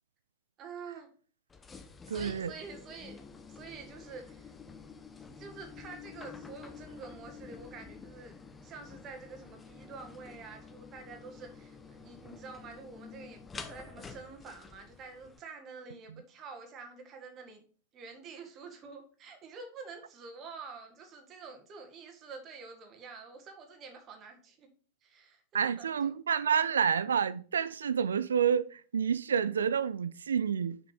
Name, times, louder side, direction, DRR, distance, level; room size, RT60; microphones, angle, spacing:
voice 1, 0.6-1.1 2.1-3.2 3.5-4.5 5.4-8.4 8.6-17.6 17.9-24.7 25.0-26.1, right 4 dB, 30° right, 1.7 m, -48 dB
sound 1, 1.5-15.4, left 5 dB, 15° left, 0.8 m, -49 dB
voice 2, 2.1-2.5 25.5-30.8, right 7 dB, 70° right, 0.4 m, -29 dB
6.5 x 5.8 x 4.9 m
figure-of-eight pair, 90°, 0 cm